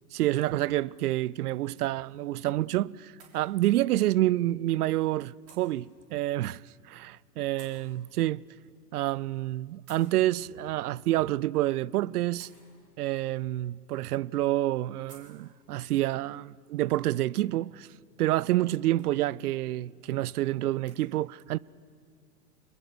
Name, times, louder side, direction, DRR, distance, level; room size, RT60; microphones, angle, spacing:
voice 1, 0.1-6.6 6.9-8.4 8.9-12.5 13.0-17.9 18.2-21.6, right 15 dB, 70° right, 0.5 m, -28 dB
sound 1, 1.5-21.0, right 5 dB, 30° right, 6.5 m, -63 dB
25.5 x 21.5 x 6.3 m
hypercardioid pair, 100°, 47 cm